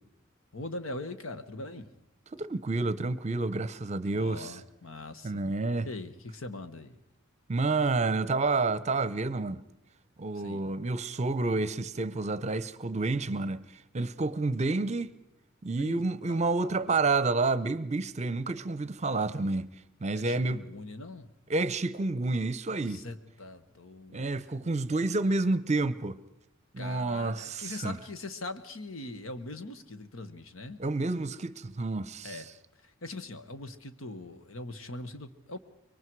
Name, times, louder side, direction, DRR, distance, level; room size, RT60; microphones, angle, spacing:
voice 1, 0.5-1.9 4.1-5.5 5.8-7.0 10.4-10.7 15.8-16.4 20.1-21.3 22.9-24.3 24.6-24.9 26.8-30.8 32.2-32.5 32.8-35.6, left 2 dB, 85° left, 1.3 m, -41 dB
voice 2, 2.3-4.6 5.2-5.9 7.5-9.6 10.2-15.1 15.6-19.7 20.0-20.6 21.5-23.1 24.1-26.2 26.7-28.0 30.8-32.4, right 3 dB, 35° right, 0.7 m, -29 dB
25.0 x 23.0 x 4.7 m
head